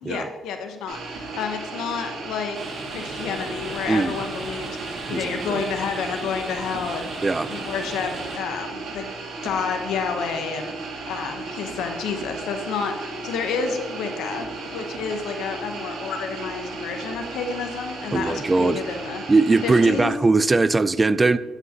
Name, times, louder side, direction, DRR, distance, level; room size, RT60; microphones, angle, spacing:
voice 1, 0.0-9.1 9.4-19.3 19.6-20.1, left 6 dB, 85° left, 5 dB, 0.8 m, -30 dB
sound 1, 0.9-20.0, right 3 dB, 80° right, 1.7 m, -35 dB
sound 2, 2.5-8.4, right 2 dB, 40° right, 1.6 m, -37 dB
voice 2, 3.9-4.2 5.1-5.6 7.2-7.5 18.1-18.8 19.3-21.4, right 3 dB, 25° right, 15 dB, 0.3 m, -20 dB
9.3 x 8.0 x 2.8 m, 1.2 s
cardioid pair, 90°, 0 cm